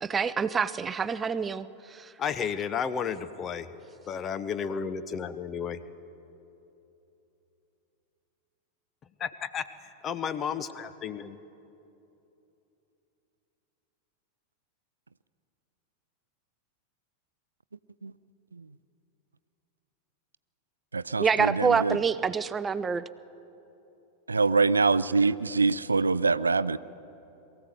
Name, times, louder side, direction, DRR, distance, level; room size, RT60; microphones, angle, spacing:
voice 1, 0.0-2.1 21.2-23.0, right 6 dB, 20° right, 16 dB, 0.6 m, -27 dB
voice 2, 2.2-3.7 4.1-5.8 9.2-9.7 10.0-11.4, left 7 dB, 25° left, 12 dB, 0.9 m, -32 dB
voice 3, 20.9-22.0 24.3-26.8, right 4 dB, 75° right, 17 dB, 0.4 m, -24 dB
22.5 x 15.0 x 8.0 m, 3.0 s
figure-of-eight pair, 90°, 0 cm